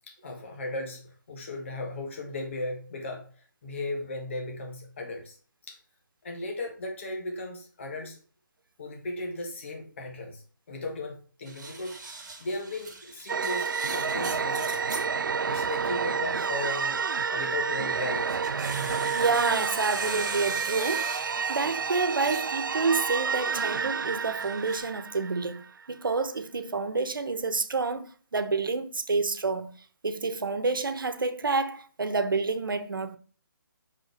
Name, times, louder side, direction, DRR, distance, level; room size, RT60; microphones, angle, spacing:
voice 1, 0.1-5.4 5.7-5.8 6.2-8.2 8.8-15.0 15.4-17.0 17.3-18.5, left 2 dB, 35° left, 1.6 m, -36 dB
sound 1, 11.5-15.1 15.5-17.0 17.5-22.7 23.0-24.8, right 3 dB, 60° right, 2.2 m, -40 dB
sound 2, 13.3-25.8, right 6 dB, 75° right, 0.5 m, -30 dB
voice 2, 19.1-29.7 30.0-33.2, right 4 dB, 90° right, 1.1 m, -29 dB
5.8 x 5.5 x 4.3 m
hypercardioid pair, 170°, 11 cm